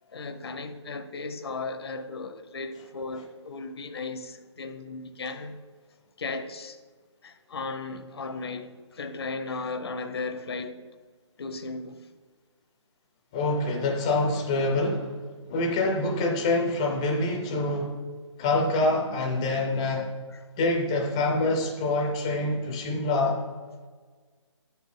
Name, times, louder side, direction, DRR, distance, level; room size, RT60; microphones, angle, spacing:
voice 1, 0.1-5.6 6.2-6.8 7.2-10.8 11.4-12.0 20.3-20.4, left 3 dB, 55° left, 0.6 m, -36 dB
voice 2, 13.3-15.2 15.5-18.0 18.4-20.1 20.6-23.4, left 2 dB, 10° left, 0.4 m, -26 dB
7.5 x 6.1 x 3.6 m
hypercardioid pair, 160°, 16 cm